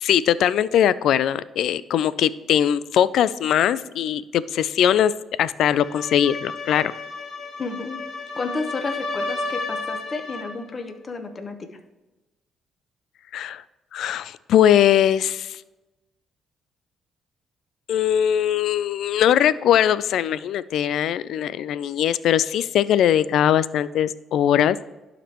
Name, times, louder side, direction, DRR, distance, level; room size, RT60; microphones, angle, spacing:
voice 1, 0.0-5.1 5.4-6.9 13.3-13.6 13.9-15.6 17.9-24.8, left 10 dB, 75° left, 17 dB, 0.3 m, -20 dB
sound 1, 5.7-10.6, left 3 dB, 55° left, 1.8 m, -32 dB
voice 2, 7.6-8.0 8.4-11.8, left 3 dB, 40° left, 7 dB, 1.0 m, -31 dB
11.5 x 5.1 x 3.0 m, 1.1 s
cardioid pair, 90°, 0 cm